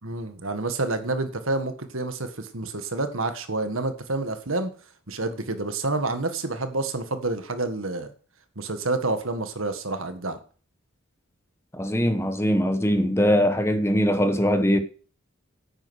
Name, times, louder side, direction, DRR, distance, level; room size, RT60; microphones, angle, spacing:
voice 1, 0.0-4.7 5.1-8.1 8.5-10.4, right 2 dB, 70° right, 1.7 m, -28 dB
voice 2, 11.7-14.8, equal, 10° left, 1.1 m, -21 dB
9.8 x 8.9 x 6.4 m
head